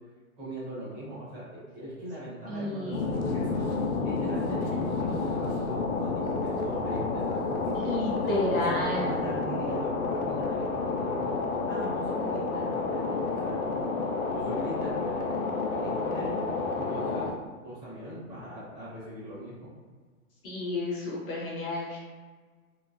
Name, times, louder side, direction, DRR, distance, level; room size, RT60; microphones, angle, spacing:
voice 1, 0.4-13.9 14.3-16.4 16.7-17.3 17.6-19.7, right 1 dB, 20° right, -9 dB, 0.9 m, -40 dB
voice 2, 2.5-3.2 7.8-9.1 20.4-22.0, left 1 dB, 40° left, -5 dB, 0.7 m, -31 dB
sound 1, 2.9-17.3, left 4 dB, 75° left, 0.6 m, -30 dB
3.0 x 2.1 x 2.4 m, 1.4 s
hypercardioid pair, 150°, 43 cm